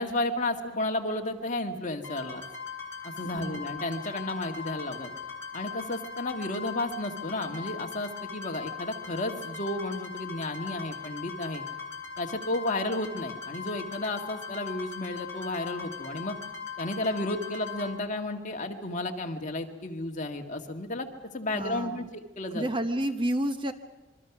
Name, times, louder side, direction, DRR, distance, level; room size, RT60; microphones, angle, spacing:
voice 1, 0.0-2.4 3.0-5.1 5.5-11.6 12.2-16.4 16.8-22.7, left 2 dB, 40° left, 3 dB, 1.9 m, -32 dB
sound 1, 2.0-17.9, left 5 dB, 15° left, 3.9 m, -40 dB
voice 2, 3.3-3.7 21.5-22.1 22.5-23.7, right 1 dB, 25° right, 8 dB, 1.0 m, -30 dB
26.5 x 23.5 x 6.0 m, 1.1 s
head